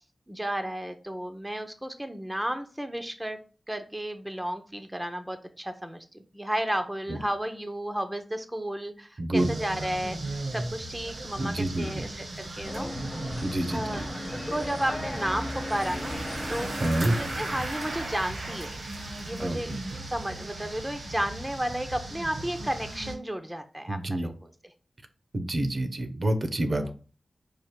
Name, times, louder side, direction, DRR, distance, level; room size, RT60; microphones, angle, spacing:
voice 1, 0.3-3.4 3.7-12.9 13.7-14.1 14.3-16.2 16.5-16.9 17.1-18.7 19.2-19.7 20.1-24.3 26.8-26.9, right 1 dB, 10° right, 6 dB, 0.6 m, -33 dB
voice 2, 9.2-9.5 11.4-12.0 13.4-14.0 16.8-17.1 19.4-19.8 23.9-24.3 25.3-26.9, right 1 dB, 50° right, 8 dB, 0.7 m, -28 dB
sound 1, 9.3-23.1, right 2 dB, 90° right, 1.5 m, -37 dB
sound 2, 12.6-17.6, left 1 dB, 20° left, 0.9 m, -37 dB
4.9 x 2.5 x 4.4 m, 0.37 s
wide cardioid pair, 80°, 0 cm